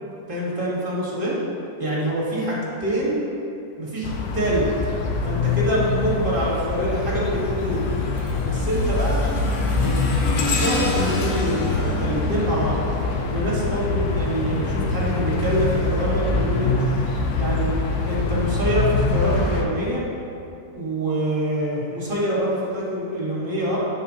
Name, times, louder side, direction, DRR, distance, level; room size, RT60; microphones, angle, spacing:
voice 1, 0.3-1.4 1.8-3.3 3.8-4.7 5.2-7.8 8.4-9.2 9.7-10.0 10.4-12.8 13.3-16.7 17.4-17.7 18.1-20.0 20.7-23.8, right 1 dB, 35° right, -6 dB, 1.7 m, -25 dB
sound 1, 4.0-19.6, left 3 dB, 85° left, 1.2 m, -24 dB
sound 2, 5.8-6.2 6.7-13.5 14.7-16.9 17.6-17.8 18.7-18.8, left 2 dB, 60° left, 1.1 m, -32 dB
7.8 x 6.7 x 2.8 m, 2.7 s
omnidirectional pair, 1.6 m